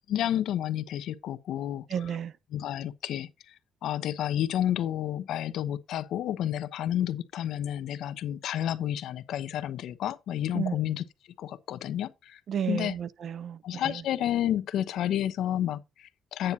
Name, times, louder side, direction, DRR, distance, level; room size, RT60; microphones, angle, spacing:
voice 1, 0.1-1.9 2.5-11.0 11.4-12.4 12.7-12.9 13.6-16.5, left 11 dB, 80° left, 0.9 m, -30 dB
voice 2, 1.9-2.3 10.5-10.8 12.5-14.0, right 8 dB, 60° right, 0.7 m, -32 dB
11.0 x 9.1 x 2.8 m
cardioid pair, 90°, 0 cm